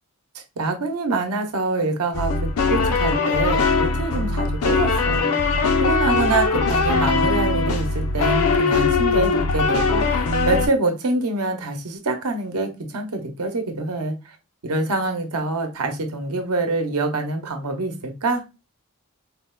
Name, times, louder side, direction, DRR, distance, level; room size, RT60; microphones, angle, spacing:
voice 1, 0.6-5.4 5.8-14.2 14.6-18.4, right 2 dB, 90° right, 0.7 m, -25 dB
sound 1, 2.1-10.7, left 4 dB, 75° left, 0.5 m, -20 dB
4.0 x 2.1 x 2.2 m
head